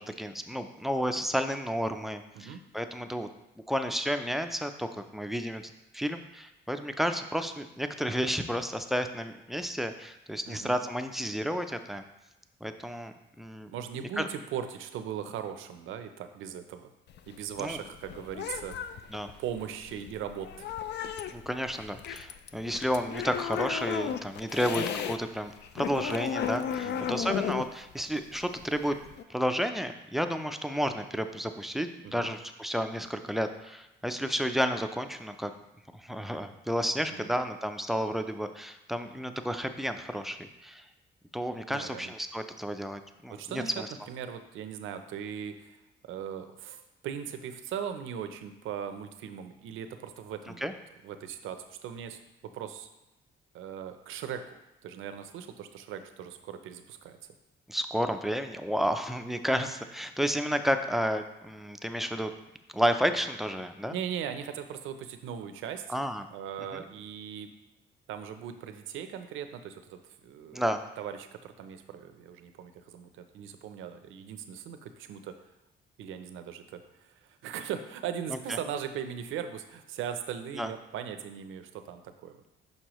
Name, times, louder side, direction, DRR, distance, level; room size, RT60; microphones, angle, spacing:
voice 1, 0.1-3.3 3.7-5.6 5.9-12.0 12.6-13.7 14.2-14.3 17.6-17.8 19.1-19.3 21.3-29.0 29.3-35.5 35.9-40.4 40.6-40.8 41.3-43.9 50.6-50.7 57.7-62.3 62.7-63.9 65.9-66.3 66.7-66.8 70.5-70.8 78.3-78.4 80.5-80.7, equal, ahead, 7 dB, 0.4 m, -31 dB
voice 2, 10.5-10.8 13.7-16.9 17.3-18.8 19.4-20.7 26.8-27.4 32.0-32.3 37.1-37.3 41.7-42.1 43.3-45.8 46.0-50.7 51.0-52.9 53.5-57.2 63.9-65.8 66.3-67.5 68.1-70.7 71.0-75.4 76.0-82.5, right 8 dB, 85° right, 8 dB, 0.6 m, -39 dB
sound 1, 17.1-25.2 25.5-29.2, left 8 dB, 60° left, 0.4 m, -35 dB
6.4 x 5.4 x 3.0 m, 0.99 s
cardioid pair, 90°, 20 cm